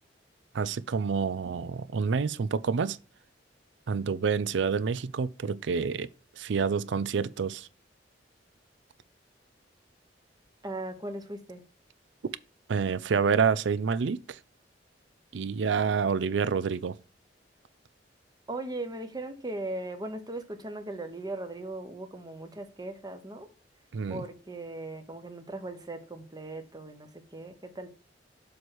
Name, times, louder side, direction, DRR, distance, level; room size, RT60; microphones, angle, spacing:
voice 1, 0.5-3.0 3.9-6.1 6.4-7.7 12.7-14.4 15.3-16.9 23.9-24.2, right 5 dB, 80° right, 0.4 m, -28 dB
voice 2, 10.6-11.6 18.5-23.5 24.1-27.9, right 2 dB, 20° right, 1.0 m, -38 dB
7.1 x 3.2 x 6.1 m
head